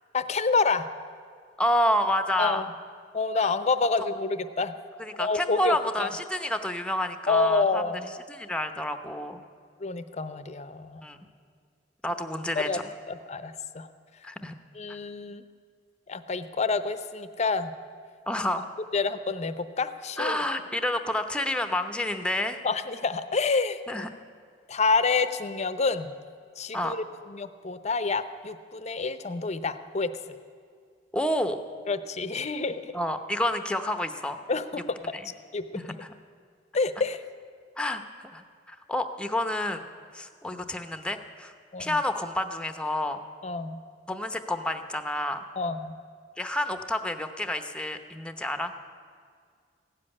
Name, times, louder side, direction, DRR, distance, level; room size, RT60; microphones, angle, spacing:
voice 1, 0.1-0.9 2.4-2.7 3.1-4.7 5.2-6.1 7.3-8.1 9.8-11.0 12.5-12.8 13.1-13.9 14.7-15.4 16.1-17.7 18.9-20.4 22.6-24.1 24.7-26.1 26.6-30.4 31.9-32.9 34.5-34.8 35.5-35.8 36.7-37.2 41.7-42.0 43.4-43.8 45.6-46.0, left 4 dB, 40° left, 12 dB, 0.7 m, -28 dB
voice 2, 1.6-2.7 5.0-7.8 8.3-9.4 11.0-11.2 12.0-12.8 14.2-14.5 14.9-15.0 18.3-18.7 20.2-22.6 23.9-24.1 26.7-26.9 31.1-31.6 32.9-34.4 35.1-35.3 35.7-36.1 37.8-39.9 40.1-41.5 41.8-43.2 44.1-45.4 46.4-48.7, left 1 dB, 5° left, 8 dB, 0.8 m, -29 dB
16.0 x 7.5 x 9.8 m, 2.1 s
head